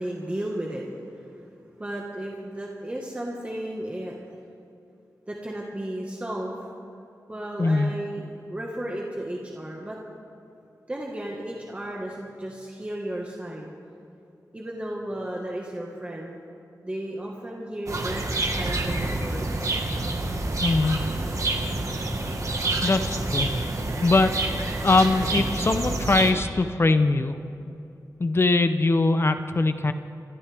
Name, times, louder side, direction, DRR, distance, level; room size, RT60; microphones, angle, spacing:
voice 1, 0.0-4.4 5.3-6.5 7.3-10.0 10.9-13.7 14.5-16.4 16.8-19.6, right 1 dB, 20° right, -2 dB, 1.6 m, -34 dB
voice 2, 7.6-7.9 20.6-21.0 22.8-23.5 24.0-24.3 24.8-27.3 28.2-29.9, left 3 dB, 40° left, 9 dB, 0.7 m, -21 dB
sound 1, 17.9-26.3, right 2 dB, 50° right, 1.6 m, -27 dB
26.5 x 14.0 x 3.5 m, 2.6 s
wide cardioid pair, 125°, 7 cm